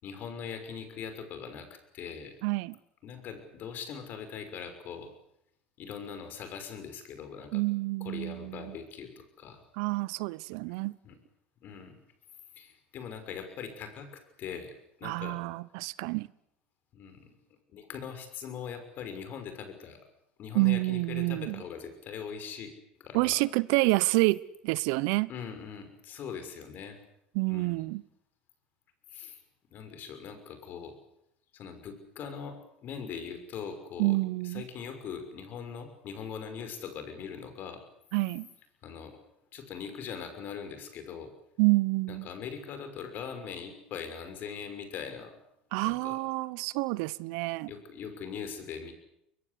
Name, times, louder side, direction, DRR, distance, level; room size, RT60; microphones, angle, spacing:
voice 1, 0.0-2.3 3.0-5.1 5.8-7.6 8.0-9.6 11.0-11.2 11.6-11.9 12.6-15.4 16.9-17.3 17.7-20.0 20.4-22.7 23.0-23.4 25.3-27.0 27.5-27.8 29.1-29.4 29.7-30.9 31.5-34.2 34.4-37.8 38.8-39.2 39.5-41.3 42.1-45.4 45.8-46.2 47.7-48.9, left 7 dB, 50° left, 6.2 m, -41 dB
voice 2, 2.4-2.7 7.5-8.7 9.8-10.9 15.0-16.3 20.5-21.6 23.1-25.3 27.3-28.0 34.0-34.6 38.1-38.5 41.6-42.3 45.7-47.7, right 23 dB, 70° right, 0.8 m, -28 dB
22.0 x 22.0 x 8.4 m
hypercardioid pair, 80°, 4 cm